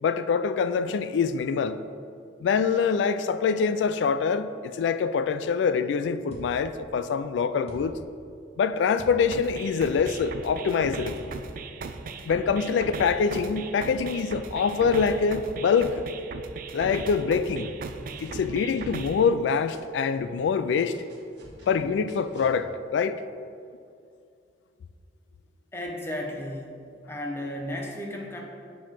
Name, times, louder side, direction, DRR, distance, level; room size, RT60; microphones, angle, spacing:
voice 1, 0.0-1.8 2.4-8.0 8.6-11.2 12.3-16.0 16.7-17.7 18.2-21.0 21.7-23.2, left 5 dB, 85° left, 0.3 m, -25 dB
sound 1, 6.3-6.9 7.6-8.3 9.0-9.5 10.0-10.7 11.1-11.8 13.4-13.5 14.3-14.4 17.5-17.8 18.1-18.4 18.7-19.0, equal, 35° left, 1.0 m, -46 dB
sound 2, 9.3-19.3, right 4 dB, 50° right, 0.3 m, -38 dB
sound 3, 17.8-19.8 20.1-22.5, right 1 dB, 75° right, 1.4 m, -49 dB
voice 2, 25.7-26.8 27.1-28.4, left 1 dB, 15° left, 0.7 m, -34 dB
6.8 x 3.1 x 5.7 m
head